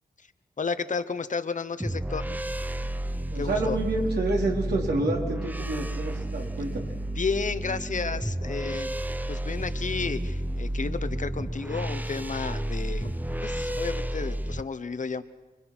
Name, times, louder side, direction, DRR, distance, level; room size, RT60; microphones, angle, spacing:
voice 1, 0.6-2.2 3.3-3.8 7.2-8.9 9.3-13.1 13.4-15.2, left 5 dB, 50° left, 12 dB, 1.1 m, -32 dB
sound 1, 1.8-14.6, right 1 dB, 10° right, 0.7 m, -31 dB
voice 2, 3.3-6.9, right 2 dB, 85° right, -1 dB, 4.5 m, -28 dB
28.5 x 23.0 x 6.2 m, 1.2 s
wide cardioid pair, 100°, 17 cm